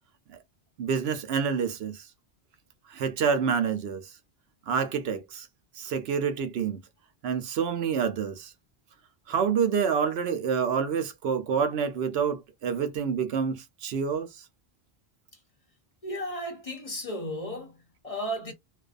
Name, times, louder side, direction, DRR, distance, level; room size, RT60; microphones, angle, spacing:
voice 1, 0.8-2.0 2.9-4.1 4.7-5.5 5.8-6.8 7.2-8.5 9.3-14.4, right 6 dB, 75° right, 0.8 m, -28 dB
voice 2, 16.0-18.5, equal, 35° left, 0.8 m, -34 dB
2.6 x 2.2 x 2.4 m
omnidirectional pair, 1.1 m